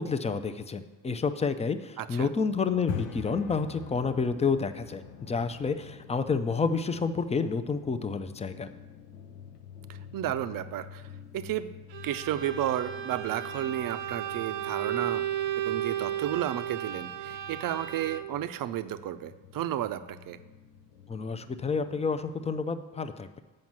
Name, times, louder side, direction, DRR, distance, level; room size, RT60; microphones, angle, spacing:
voice 1, 0.0-8.7 21.1-23.4, left 5 dB, 15° left, 10 dB, 0.4 m, -29 dB
voice 2, 2.0-2.3 10.1-11.1 11.3-11.7 12.0-15.3 15.6-20.4, right 12 dB, 50° right, 12 dB, 0.5 m, -32 dB
sound 1, 2.7-22.6, left 8 dB, 90° left, 0.8 m, -46 dB
Bowed string instrument, 11.9-18.5, right 11 dB, 80° right, 0.8 m, -34 dB
7.7 x 5.3 x 7.3 m, 1.2 s
cardioid pair, 115°, 43 cm